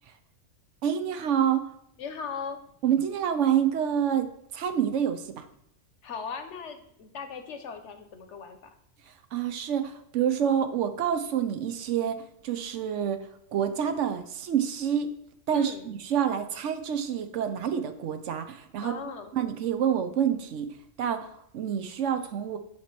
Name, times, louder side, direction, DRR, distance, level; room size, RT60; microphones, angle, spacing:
voice 1, 0.8-1.7 2.8-5.5 9.1-15.1 15.5-18.9 19.3-20.7 21.0-22.6, right 9 dB, 70° right, 8 dB, 1.0 m, -28 dB
voice 2, 2.0-2.6 6.0-8.7 15.5-15.9 18.8-19.3, left 6 dB, 70° left, 7 dB, 1.1 m, -38 dB
7.6 x 2.9 x 5.8 m, 0.73 s
omnidirectional pair, 1.3 m